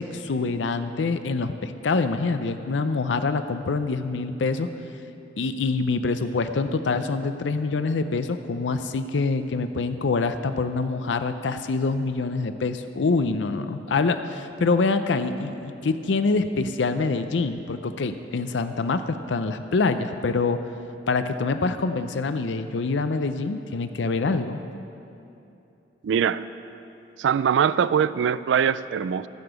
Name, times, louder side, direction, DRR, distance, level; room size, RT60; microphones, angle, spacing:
voice 1, 0.0-4.7 5.4-20.6 21.1-24.6, left 3 dB, 90° left, 10 dB, 0.5 m, -25 dB
voice 2, 26.0-26.5 27.2-29.3, right 7 dB, 90° right, 16 dB, 0.3 m, -22 dB
14.5 x 6.9 x 8.0 m, 2.8 s
head